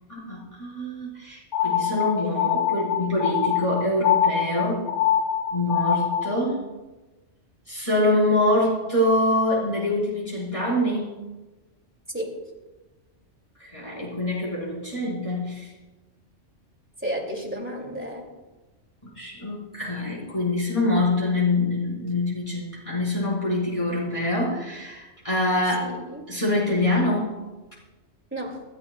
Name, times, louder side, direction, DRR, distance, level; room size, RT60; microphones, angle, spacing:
voice 1, 0.1-4.9 5.5-6.6 7.7-11.2 13.6-15.7 19.0-26.0 26.3-27.3, left 1 dB, 25° left, -8 dB, 4.8 m, -25 dB
sound 1, 1.5-6.4, left 9 dB, 80° left, 1.2 m, -24 dB
voice 2, 17.0-18.3 25.8-26.2 28.3-28.6, right 1 dB, 10° right, 0 dB, 2.5 m, -32 dB
28.5 x 12.0 x 2.4 m, 1.2 s
omnidirectional pair, 1.2 m